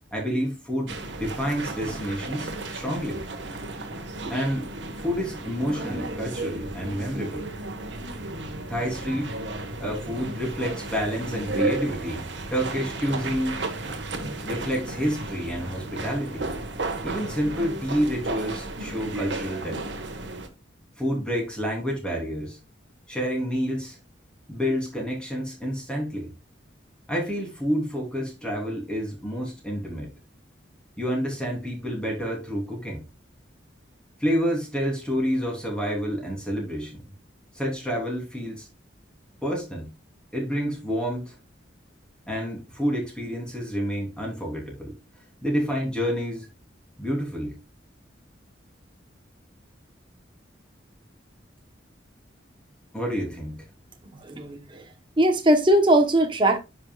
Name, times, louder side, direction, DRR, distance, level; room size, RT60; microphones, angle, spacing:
voice 1, 0.1-3.2 4.3-4.7 5.0-7.5 8.7-9.3 9.8-13.6 14.4-16.6 17.0-19.8 21.0-22.6 23.1-24.0 24.5-26.3 27.1-30.1 31.0-33.0 34.2-37.0 37.6-38.7 39.4-39.9 40.3-41.4 42.3-44.9 45.4-46.5 47.0-47.6 52.9-53.7, equal, 5° left, 3.3 m, -29 dB
sound 1, 0.9-20.5, right 2 dB, 65° right, 1.5 m, -34 dB
voice 2, 54.2-54.8 55.2-56.6, right 1 dB, 25° right, 1.0 m, -20 dB
9.8 x 6.0 x 2.4 m
head